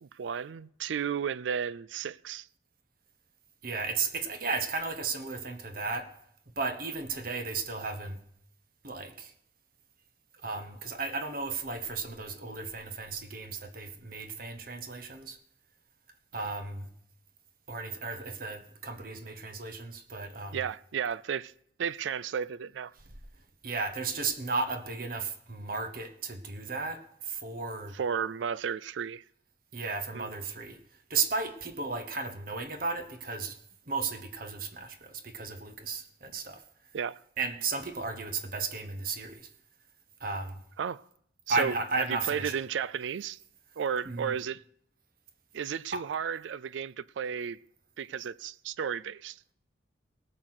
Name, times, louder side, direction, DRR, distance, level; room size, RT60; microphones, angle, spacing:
voice 1, 0.0-2.5 20.5-21.5 21.8-22.9 27.9-29.2 30.1-30.3 36.9-37.2 40.8-41.0 41.5-43.4 43.8-44.6 45.5-47.6 48.0-49.4, right 7 dB, 80° right, 0.4 m, -33 dB
voice 2, 3.6-6.1 6.6-8.2 8.8-9.3 10.4-15.4 16.3-16.9 17.7-20.6 23.6-28.0 29.7-30.8 31.1-33.6 33.9-36.6 37.4-39.5 40.2-40.6 41.5-42.5 44.1-44.4 45.9-46.0, right 4 dB, 50° right, 1.1 m, -34 dB
18.0 x 6.1 x 6.5 m
head